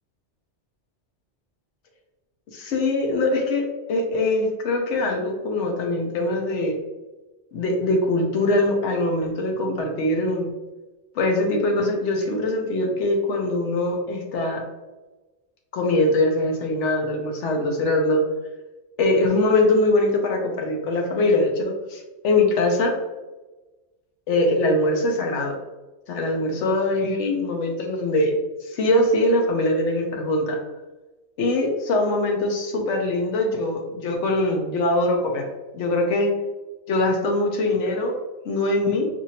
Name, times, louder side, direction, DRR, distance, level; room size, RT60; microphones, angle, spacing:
voice 1, 2.5-6.8 7.5-10.5 11.1-14.6 15.7-18.2 19.0-22.9 24.3-25.6 26.1-28.3 28.6-30.6 31.4-35.5 35.7-36.3 36.9-38.1 38.4-39.1, left 2 dB, 85° left, 2 dB, 1.0 m, -22 dB
4.4 x 2.5 x 2.8 m, 1.1 s
omnidirectional pair, 1.2 m